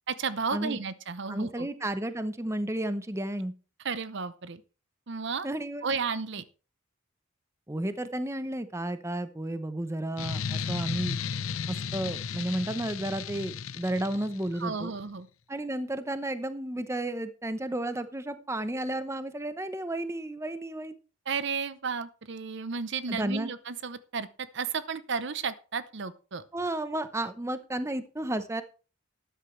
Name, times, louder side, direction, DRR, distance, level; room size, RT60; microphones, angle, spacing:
voice 1, 0.1-1.7 3.8-4.6 5.1-5.5 5.8-6.4 14.5-15.3 21.3-26.4, right 5 dB, 60° right, 14 dB, 0.7 m, -33 dB
voice 2, 1.3-3.5 5.4-5.8 7.7-11.2 11.7-14.9 15.5-21.0 23.1-23.5 26.5-28.6, right 1 dB, 15° right, 11 dB, 0.8 m, -32 dB
sound 1, 10.2-14.6, left 6 dB, 80° left, 0.7 m, -34 dB
13.0 x 10.0 x 3.2 m, 0.34 s
head